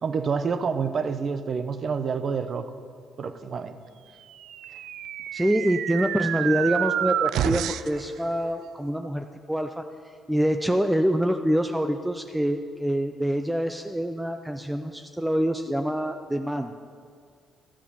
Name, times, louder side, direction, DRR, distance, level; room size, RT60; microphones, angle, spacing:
voice 1, 0.0-2.7 3.2-3.8, right 5 dB, 50° right, 10 dB, 0.8 m, -28 dB
sound 1, 4.4-8.0, right 11 dB, 80° right, 0.3 m, -28 dB
voice 2, 5.3-9.8 10.3-16.7, equal, 5° right, 6 dB, 0.5 m, -25 dB
13.0 x 7.5 x 6.9 m, 2.1 s
cardioid pair, 90°, 0 cm